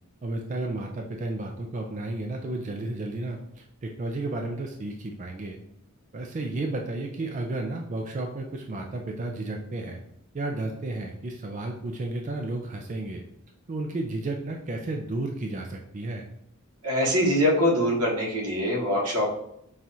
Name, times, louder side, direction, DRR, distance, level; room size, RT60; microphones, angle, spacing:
voice 1, 0.2-5.6 6.1-10.0 10.3-13.2 13.7-16.2, right 2 dB, 35° right, 2 dB, 0.3 m, -32 dB
voice 2, 16.8-19.3, equal, 90° right, -2 dB, 1.1 m, -23 dB
5.8 x 2.4 x 2.7 m, 0.74 s
head